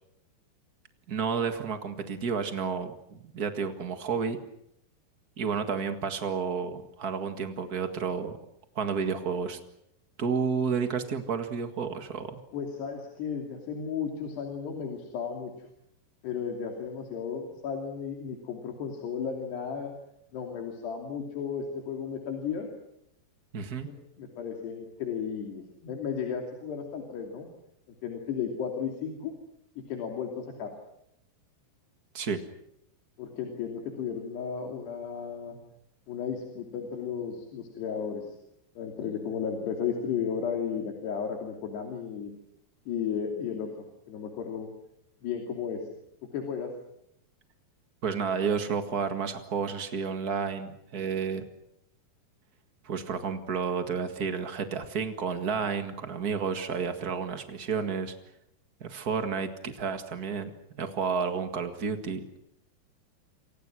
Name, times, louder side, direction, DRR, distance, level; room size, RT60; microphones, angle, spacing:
voice 1, 1.1-4.4 5.4-8.4 8.7-9.6 10.2-12.4 23.5-23.9 32.1-32.4 48.0-51.4 52.8-58.1 58.8-60.5 60.8-62.2, right 6 dB, 75° right, 8 dB, 0.8 m, -31 dB
voice 2, 12.5-15.5 16.2-19.9 20.3-22.7 23.8-27.5 28.0-29.3 29.8-30.7 33.2-35.6 36.1-38.3 38.8-42.3 42.9-43.7 44.1-44.7 45.2-45.8 46.3-46.7, left 7 dB, 70° left, 3 dB, 4.9 m, -34 dB
28.5 x 25.5 x 6.3 m, 0.80 s
omnidirectional pair, 4.9 m